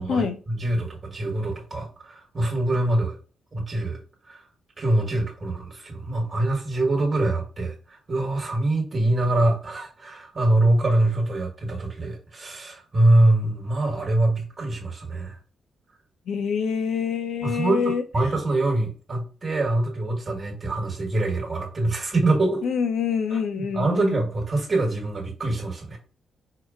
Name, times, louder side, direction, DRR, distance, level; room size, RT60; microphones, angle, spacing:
voice 1, 0.0-3.1 3.5-4.0 4.3-4.4 4.8-15.4 17.4-22.6 23.3-26.0, right 2 dB, 30° right, 1 dB, 1.4 m, -24 dB
voice 2, 16.3-18.0 22.6-24.2, left 6 dB, 70° left, 7 dB, 0.7 m, -26 dB
4.8 x 2.2 x 3.6 m, 0.36 s
cardioid pair, 140°, 0 cm